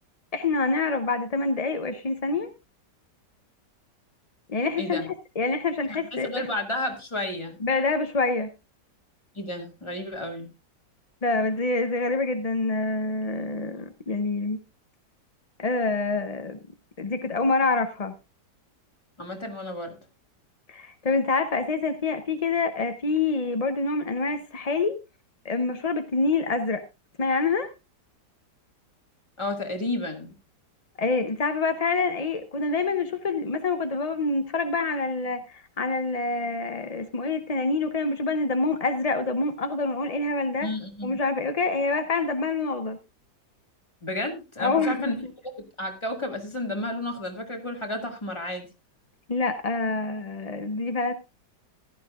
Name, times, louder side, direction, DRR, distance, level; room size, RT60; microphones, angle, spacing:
voice 1, 0.3-2.5 4.5-6.5 7.6-8.5 11.2-14.6 15.6-16.6 17.0-18.1 20.7-25.0 25.4-26.8 27.2-27.7 31.0-40.7 41.0-43.0 44.6-45.3 49.3-51.1, left 3 dB, 45° left, 0.5 m, -26 dB
voice 2, 5.9-7.6 9.4-10.5 19.2-20.0 29.4-30.3 40.6-41.1 44.0-45.2 45.6-48.7, left 1 dB, 15° left, 2.1 m, -32 dB
15.5 x 12.0 x 2.4 m
omnidirectional pair, 1.8 m